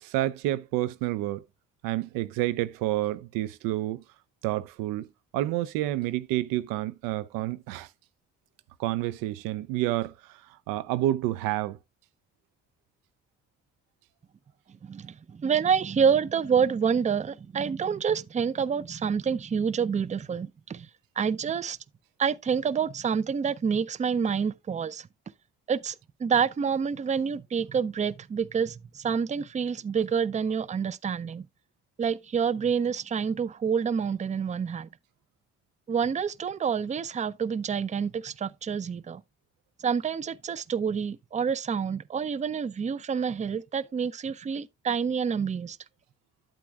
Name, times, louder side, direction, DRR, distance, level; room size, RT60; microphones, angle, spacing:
voice 1, 0.0-1.4 1.8-4.0 4.4-5.1 5.3-7.9 8.8-10.1 10.7-11.8, right 15 dB, 85° right, 0.5 m, -29 dB
voice 2, 14.8-20.9 21.2-21.8 22.2-25.1 25.7-31.4 32.0-34.9 35.9-39.2 39.8-45.8, right 6 dB, 20° right, 0.4 m, -28 dB
8.8 x 8.4 x 2.3 m
hypercardioid pair, 45°, 33 cm